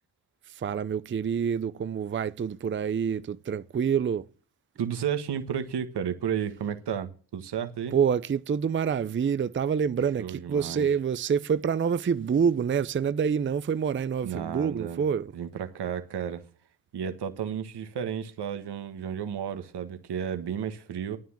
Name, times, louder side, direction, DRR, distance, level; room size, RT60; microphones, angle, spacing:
voice 1, 0.5-4.3 7.9-15.3, right 7 dB, 25° right, 0.6 m, -27 dB
voice 2, 4.8-7.9 10.2-10.9 14.2-15.0 15.3-16.4 16.9-21.2, right 8 dB, 60° right, 1.5 m, -32 dB
9.5 x 9.3 x 7.2 m
cardioid pair, 70°, 46 cm